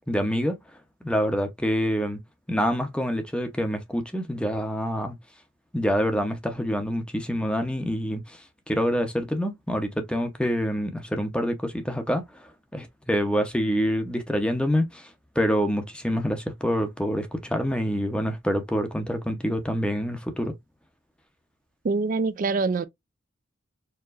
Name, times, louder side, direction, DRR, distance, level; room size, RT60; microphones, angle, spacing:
voice 1, 0.1-0.6 1.0-2.2 2.5-5.1 5.7-15.1 15.4-20.5, equal, 5° left, 0.6 m, -26 dB
voice 2, 21.8-22.9, right 4 dB, 45° right, 0.4 m, -24 dB
4.6 x 2.9 x 2.4 m
head